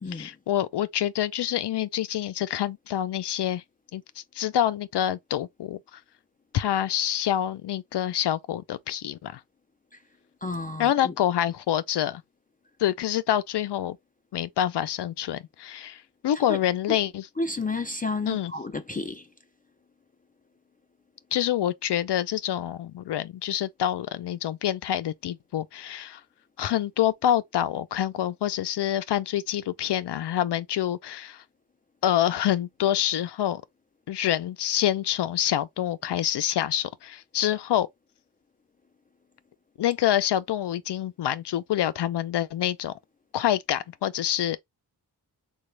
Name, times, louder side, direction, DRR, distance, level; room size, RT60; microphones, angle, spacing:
voice 1, 0.1-3.6 3.9-6.0 6.5-9.4 10.8-12.2 12.8-14.0 14.3-17.3 18.3-18.5 21.3-26.2 26.6-31.4 32.0-33.6 34.1-37.9 39.8-42.9 43.3-44.6, left 11 dB, 85° left, 0.5 m, -26 dB
voice 2, 10.4-11.1 16.5-16.6 17.4-19.3, left 3 dB, 25° left, 0.3 m, -31 dB
3.9 x 2.3 x 3.2 m
wide cardioid pair, 110°, 40 cm